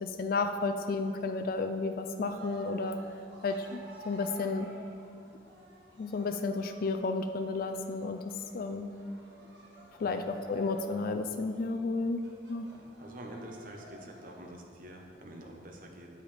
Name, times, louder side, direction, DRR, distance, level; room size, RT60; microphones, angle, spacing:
voice 1, 0.0-3.0 3.4-3.8 4.0-4.7 6.0-8.2 8.5-8.9 10.0-12.7, left 3 dB, 55° left, 7 dB, 0.4 m, -32 dB
Cheering, 2.2-14.6, right 1 dB, 80° right, 1.5 m, -53 dB
voice 2, 12.7-16.1, right 1 dB, 50° right, 2 dB, 0.9 m, -47 dB
8.4 x 7.9 x 3.3 m, 2.5 s
head